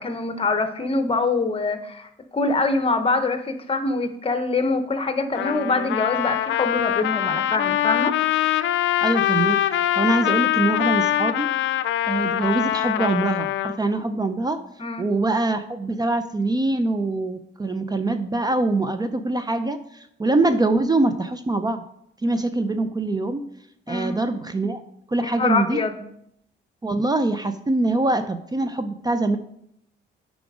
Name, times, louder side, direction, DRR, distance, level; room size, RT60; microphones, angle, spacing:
voice 1, 0.0-8.1 14.8-15.1 23.9-24.1 25.2-26.0, left 3 dB, 30° left, 8 dB, 1.0 m, -24 dB
Trumpet, 5.3-13.8, left 12 dB, 70° left, 0.5 m, -23 dB
voice 2, 9.0-9.6 10.0-11.5 12.0-14.6 15.0-21.8 22.2-23.4 23.9-24.8 25.1-25.8 26.8-29.4, right 2 dB, 20° right, 9 dB, 0.5 m, -23 dB
8.7 x 5.0 x 4.9 m, 0.73 s
cardioid pair, 90°, 20 cm